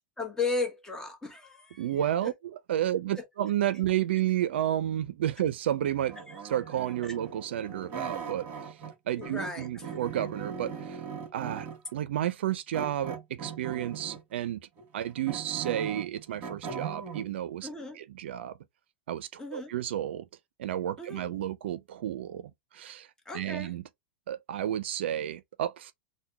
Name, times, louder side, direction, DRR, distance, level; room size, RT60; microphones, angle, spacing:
voice 1, 0.2-1.8 2.2-2.3 3.2-3.3 6.3-6.4 7.0-7.2 9.2-9.8 17.6-18.0 19.4-19.7 21.0-21.3 23.3-23.7, left 3 dB, 10° left, 1.0 m, -35 dB
voice 2, 1.8-6.2 6.4-8.8 9.1-11.0 11.3-14.6 14.9-17.7 18.0-18.5 19.1-20.3 20.6-23.1 23.3-23.8 24.3-25.9, right 11 dB, 80° right, 0.4 m, -31 dB
sound 1, 6.1-8.9 9.2-11.9 12.7-14.3 14.8-17.3, right 6 dB, 35° right, 1.6 m, -39 dB
3.5 x 2.1 x 2.7 m
hypercardioid pair, 120°, 6 cm